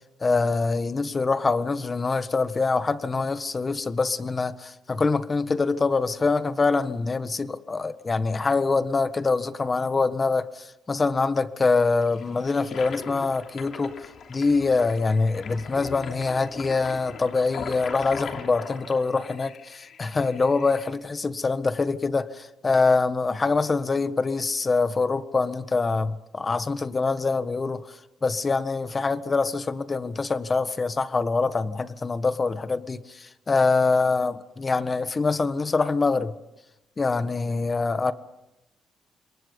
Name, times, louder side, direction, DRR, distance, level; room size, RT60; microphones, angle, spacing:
voice 1, 0.2-13.9 14.3-36.3 37.0-38.1, left 4 dB, 30° left, 12 dB, 1.5 m, -24 dB
Toilet flush, 11.8-20.9, left 6 dB, 60° left, 3.1 m, -40 dB
27.0 x 22.5 x 5.4 m, 0.95 s
cardioid pair, 90°, 0 cm